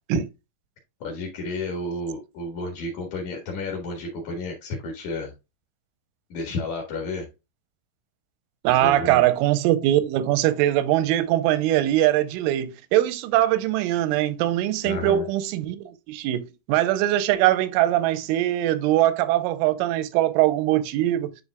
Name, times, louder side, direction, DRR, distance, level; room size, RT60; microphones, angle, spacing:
voice 1, 1.0-5.3 6.3-7.3 8.7-9.3 14.8-15.2, left 2 dB, 65° left, 1.9 m, -31 dB
voice 2, 8.6-21.3, right 14 dB, 85° right, 3.1 m, -22 dB
9.7 x 5.3 x 2.3 m
omnidirectional pair, 5.8 m